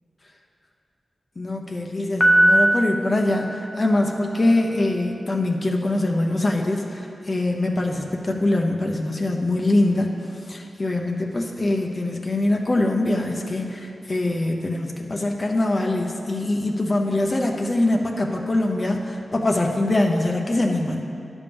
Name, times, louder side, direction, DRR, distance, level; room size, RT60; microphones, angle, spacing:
voice 1, 1.4-10.1 10.5-21.0, left 2 dB, 40° left, 1 dB, 0.9 m, -23 dB
Piano, 2.2-4.3, right 1 dB, ahead, 0.9 m, -20 dB
10.5 x 3.6 x 6.9 m, 2.7 s
cardioid pair, 60°, 0 cm